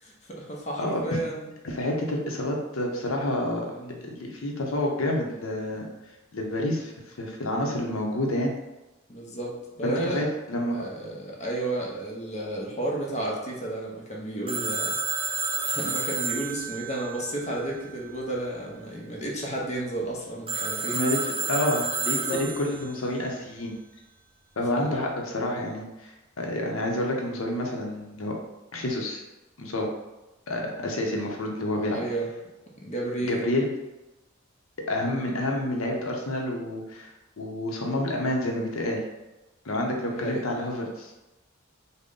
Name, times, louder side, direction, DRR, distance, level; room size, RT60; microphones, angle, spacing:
voice 1, 0.0-1.5 3.7-4.0 9.1-10.2 10.7-14.9 15.6-20.9 22.2-22.4 24.7-24.9 31.8-32.3 32.8-33.4 40.2-40.4, right 1 dB, 35° left, -2 dB, 0.7 m, -32 dB
voice 2, 0.8-1.2 1.6-3.6 4.2-5.9 6.3-8.5 9.8-10.8 20.9-23.7 24.6-28.3 28.7-29.2 29.6-29.9 30.5-32.0 33.3-33.7 34.9-39.0 39.6-41.1, left 1 dB, 80° left, 0 dB, 0.7 m, -29 dB
Telephone, 14.5-18.1 20.5-23.0, right 4 dB, 25° right, 0.4 m, -30 dB
3.8 x 2.1 x 3.6 m, 1.0 s
head